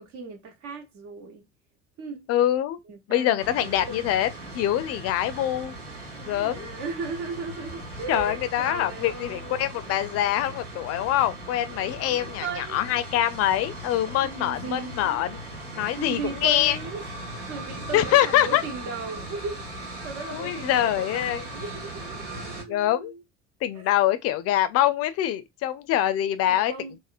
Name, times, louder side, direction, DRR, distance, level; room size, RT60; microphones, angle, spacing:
voice 1, 0.0-1.4 2.0-2.3 2.9-4.3 6.1-10.0 11.7-12.8 14.2-15.2 16.0-17.0 17.5-23.2 26.4-27.0, right 4 dB, 55° right, 1.0 m, -37 dB
voice 2, 2.3-2.8 3.1-4.3 4.5-5.7 6.2-6.7 8.1-15.4 15.7-16.8 17.9-18.6 20.3-21.4 22.7-23.1 23.6-26.7, left 12 dB, 45° left, 0.5 m, -24 dB
sound 1, 3.4-22.6, right 1 dB, 75° right, 1.2 m, -39 dB
3.5 x 2.1 x 2.4 m
figure-of-eight pair, 60°, 35 cm